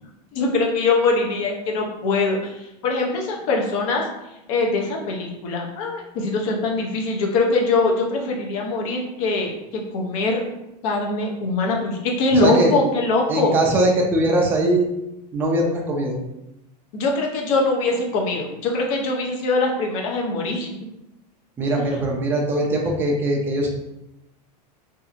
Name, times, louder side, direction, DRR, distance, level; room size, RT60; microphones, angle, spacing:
voice 1, 0.3-4.0 4.5-10.4 10.8-13.6 16.9-20.7, left 3 dB, 55° left, 0 dB, 0.6 m, -22 dB
voice 2, 12.4-12.7 13.3-14.9 15.3-16.2 21.6-23.7, right 1 dB, 10° right, -2 dB, 0.3 m, -21 dB
2.7 x 2.4 x 2.4 m, 0.92 s
supercardioid pair, 150°, 21 cm